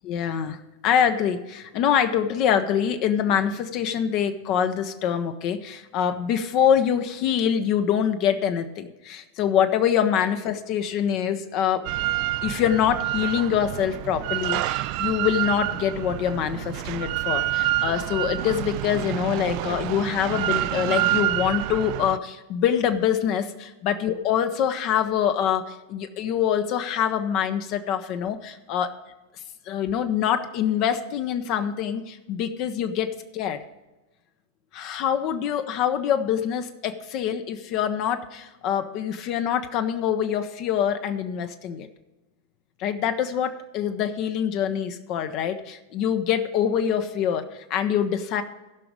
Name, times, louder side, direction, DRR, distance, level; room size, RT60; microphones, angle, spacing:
voice 1, 0.0-0.6 0.8-11.9 12.4-28.9 29.7-33.6 34.7-41.9 42.8-48.4, left 9 dB, 40° left, 8 dB, 0.7 m, -25 dB
Drill, 11.9-22.2, right 16 dB, 45° right, 0.4 m, -27 dB
15.0 x 5.9 x 4.9 m, 1.1 s
figure-of-eight pair, 90°, 0 cm